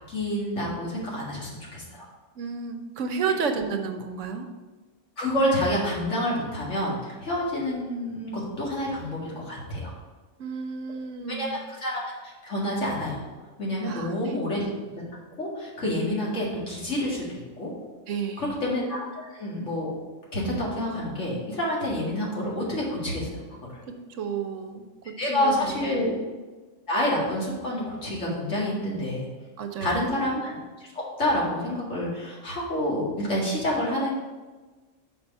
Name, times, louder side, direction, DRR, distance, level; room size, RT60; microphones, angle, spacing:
voice 1, 0.1-2.1 5.2-9.9 11.3-13.2 13.6-14.6 15.4-17.7 18.4-19.9 20.3-23.4 25.2-26.1 26.9-29.3 29.8-30.5 30.9-34.1, left 1 dB, 70° left, -5 dB, 2.4 m, -28 dB
voice 2, 2.4-4.5 10.4-11.6 13.9-14.4 18.1-18.6 23.9-26.1 29.6-30.2, right 5 dB, 80° right, 6 dB, 1.1 m, -32 dB
6.1 x 5.1 x 5.4 m, 1.3 s
omnidirectional pair, 1.3 m